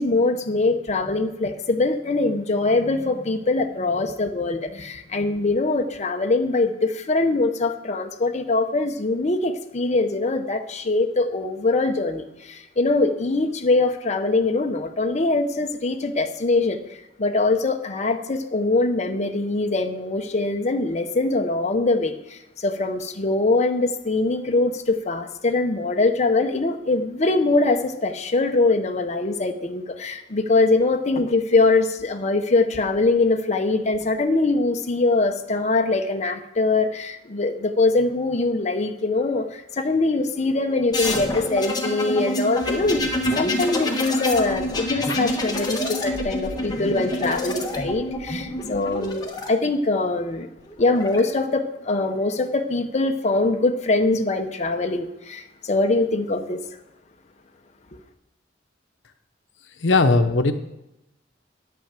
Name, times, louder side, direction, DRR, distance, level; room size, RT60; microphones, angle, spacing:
voice 1, 0.0-43.1 43.4-50.5 50.8-56.6, left 3 dB, 40° left, 5 dB, 0.8 m, -23 dB
sound 1, 40.9-49.5 50.6-51.2, left 1 dB, 20° left, 1.4 m, -27 dB
voice 2, 59.8-60.5, left 3 dB, 85° left, 8 dB, 0.8 m, -18 dB
10.0 x 6.0 x 7.5 m, 0.91 s
head